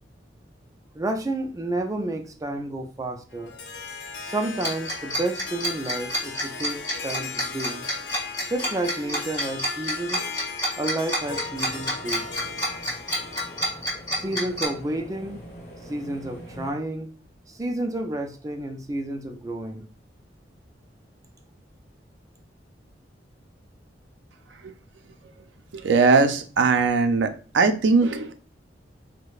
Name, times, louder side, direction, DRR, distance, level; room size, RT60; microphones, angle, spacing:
voice 1, 0.9-3.5 4.2-7.9 8.5-10.2 10.8-12.3 14.1-15.4 15.9-17.1 17.5-19.8, right 2 dB, 20° right, 5 dB, 0.4 m, -30 dB
Harp, 3.3-13.8, left 4 dB, 80° left, 0.6 m, -37 dB
Tick-tock, 4.6-14.7, equal, 20° left, 1.6 m, -28 dB
sound 1, 11.2-16.7, equal, 40° left, 1.1 m, -44 dB
voice 2, 25.7-28.3, right 4 dB, 90° right, 8 dB, 0.4 m, -20 dB
4.8 x 2.1 x 2.3 m, 0.38 s
head